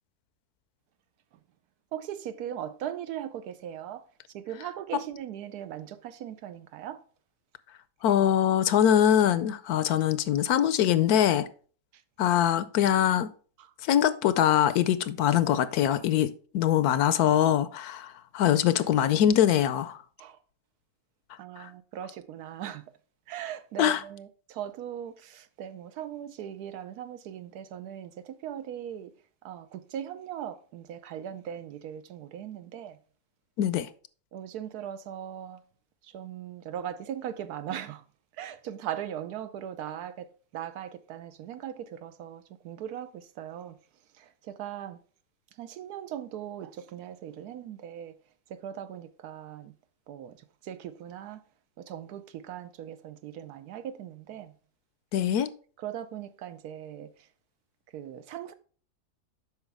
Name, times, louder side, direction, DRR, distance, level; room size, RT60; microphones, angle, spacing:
voice 1, 1.9-4.0 4.3-7.0 13.6-13.7 20.2-20.4 21.4-22.8 23.3-29.1 29.4-33.0 34.3-35.6 36.0-38.0 38.4-43.8 44.2-45.0 45.6-48.1 48.5-49.7 50.1-50.4 50.6-51.4 51.8-54.5 55.8-57.1 57.9-58.5, right 10 dB, 80° right, 1.1 m, -39 dB
voice 2, 8.0-11.5 12.2-13.3 13.8-20.0 21.6-21.7 23.8-24.0 33.6-33.9 55.1-55.5, left 10 dB, 75° left, 1.1 m, -23 dB
8.0 x 5.8 x 3.4 m
omnidirectional pair, 1.7 m